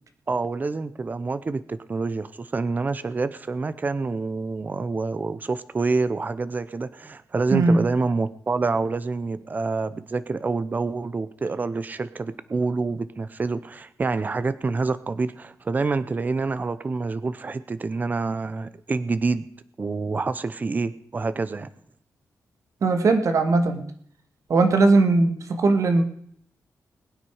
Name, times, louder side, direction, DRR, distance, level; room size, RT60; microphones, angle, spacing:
voice 1, 0.3-19.5 19.8-21.7, right 3 dB, 30° right, 15 dB, 0.7 m, -27 dB
voice 2, 7.5-7.8 22.8-23.9 24.5-26.0, right 3 dB, 60° right, 6 dB, 2.1 m, -19 dB
21.5 x 9.4 x 4.9 m, 0.65 s
wide cardioid pair, 155°, 6 cm